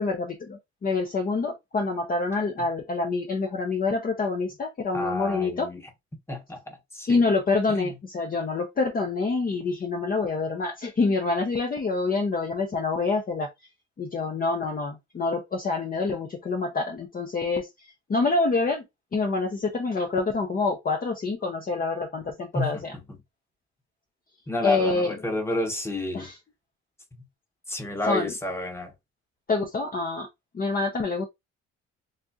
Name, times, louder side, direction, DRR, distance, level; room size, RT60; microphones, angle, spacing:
voice 1, 0.0-5.7 7.1-13.5 14.0-18.8 19.1-22.9 24.6-25.1 26.1-26.3 28.1-28.3 29.5-30.3 30.5-31.3, left 3 dB, 30° left, 0.6 m, -26 dB
voice 2, 4.9-5.9 6.3-7.2 7.7-8.0 22.5-23.2 24.5-26.3 27.2-27.3 27.7-28.9, left 1 dB, 10° left, 1.0 m, -31 dB
4.1 x 2.5 x 2.4 m
cardioid pair, 90°, 30 cm